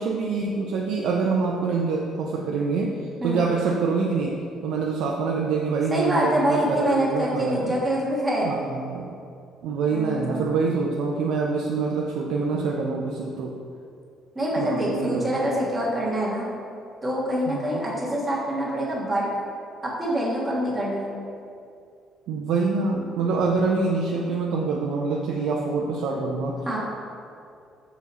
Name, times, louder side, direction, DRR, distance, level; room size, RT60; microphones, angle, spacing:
voice 1, 0.0-4.3 4.6-7.7 8.4-9.1 9.6-13.5 14.6-15.5 17.5-17.8 22.3-26.6, right 4 dB, 80° right, -2 dB, 0.5 m, -25 dB
voice 2, 5.9-8.5 9.9-10.4 14.3-16.5 17.0-19.3 19.8-21.1 26.6-26.8, right 1 dB, 10° right, -5 dB, 1.4 m, -25 dB
6.1 x 4.1 x 4.1 m, 2.4 s
cardioid pair, 135°, 0 cm